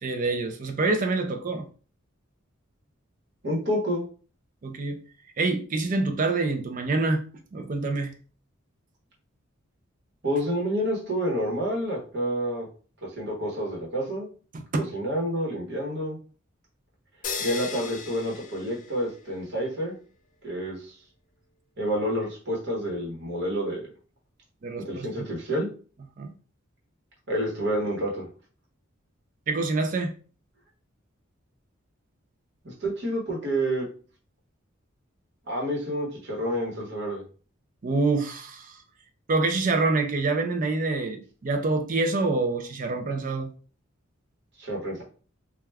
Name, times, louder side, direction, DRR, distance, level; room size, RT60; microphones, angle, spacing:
voice 1, 0.0-1.7 4.6-5.0 5.4-7.2 7.5-8.1 14.5-14.8 24.6-25.3 26.2-26.3 29.5-30.1 37.8-38.8 39.3-43.5, right 3 dB, 40° right, 0.4 m, -26 dB
voice 2, 3.4-4.1 10.2-12.7 13.0-14.3 14.8-16.2 17.4-20.0 20.4-20.9 21.8-23.9 24.8-25.7 27.3-28.3 32.6-33.8 35.5-37.2 44.6-45.0, equal, 55° right, 1.1 m, -29 dB
sound 1, 17.2-19.4, left 5 dB, 40° left, 0.4 m, -36 dB
2.3 x 2.2 x 3.3 m
head